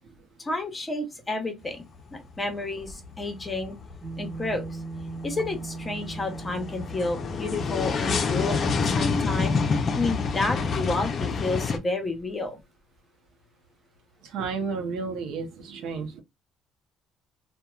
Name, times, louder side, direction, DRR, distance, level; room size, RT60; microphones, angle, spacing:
voice 1, 0.4-1.8 2.1-3.8 4.2-4.8 5.2-9.6 9.9-12.6, left 2 dB, 20° left, 0.8 m, -30 dB
sound 1, 1.6-2.3 2.6-11.8, left 4 dB, 45° left, 0.5 m, -28 dB
sound 2, 4.0-10.7, right 3 dB, 30° right, 0.8 m, -41 dB
voice 2, 14.2-16.2, right 5 dB, 80° right, 0.7 m, -32 dB
2.9 x 2.1 x 2.3 m
cardioid pair, 110°, 0 cm